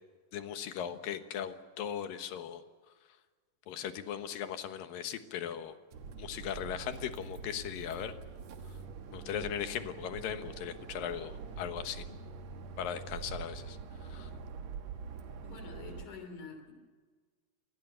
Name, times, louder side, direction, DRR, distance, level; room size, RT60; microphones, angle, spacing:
voice 1, 0.3-2.6 3.7-5.8 6.2-8.1 9.1-12.2 12.8-14.3, left 9 dB, 80° left, 9 dB, 3.0 m, -38 dB
sound 1, 5.9-16.1, right 5 dB, 60° right, 2.3 m, -45 dB
voice 2, 15.4-16.7, left 4 dB, 60° left, 7 dB, 4.7 m, -47 dB
26.5 x 20.0 x 6.9 m, 1.5 s
omnidirectional pair, 3.9 m